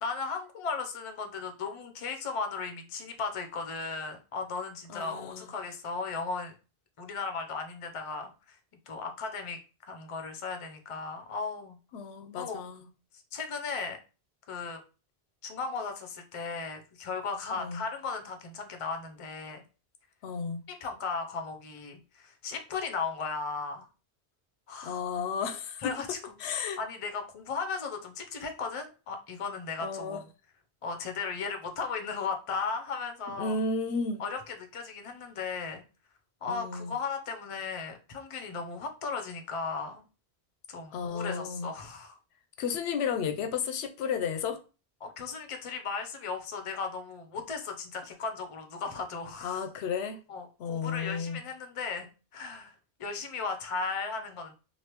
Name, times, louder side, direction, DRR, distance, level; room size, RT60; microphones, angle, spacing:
voice 1, 0.0-6.5 7.0-8.6 8.9-9.6 9.9-11.8 12.4-12.7 13.1-14.0 14.5-14.8 15.4-19.6 20.8-23.9 24.7-25.0 25.8-26.3 26.8-30.3 30.8-33.6 34.2-35.8 36.4-40.0 40.7-42.2 45.0-49.6 50.3-52.7 53.0-54.5, left 4 dB, 40° left, 5 dB, 0.5 m, -36 dB
voice 2, 4.9-5.5 11.9-12.9 17.6-17.8 20.2-20.6 24.8-25.9 26.4-26.8 29.8-30.2 33.4-34.2 36.4-37.0 40.9-41.7 42.6-44.6 49.4-50.2 50.6-51.4, left 5 dB, 90° left, 8 dB, 0.8 m, -33 dB
3.2 x 2.6 x 2.9 m, 0.33 s
omnidirectional pair, 1.0 m